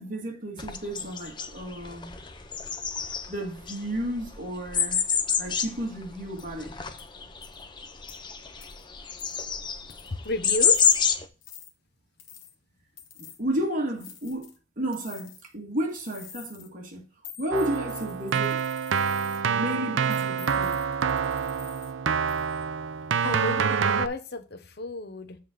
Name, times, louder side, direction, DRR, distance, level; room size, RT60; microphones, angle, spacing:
voice 1, 0.0-2.2 3.3-5.0 5.4-6.8 13.2-14.5 14.8-17.0 17.4-18.7 19.5-20.7, right 1 dB, 45° right, 1.8 m, -32 dB
sound 1, 0.6-11.2, left 7 dB, 25° left, 0.7 m, -28 dB
sound 2, 6.4-6.5 7.0-7.1 7.4-7.6 8.1-8.2 8.6-8.8 9.2-9.4 9.9-10.2 10.7-11.0 11.4-11.7 12.2-12.5 13.0-13.4 14.0-14.6 14.9-15.5 15.9-16.7 17.2-19.4 20.1-21.9 22.3-22.6, left 9 dB, 80° left, 1.4 m, -48 dB
voice 2, 10.1-10.8 23.2-25.4, left 2 dB, 55° left, 1.0 m, -32 dB
Keyboard (musical), 17.5-24.1, right 6 dB, 80° right, 0.5 m, -27 dB
7.6 x 3.7 x 6.5 m
head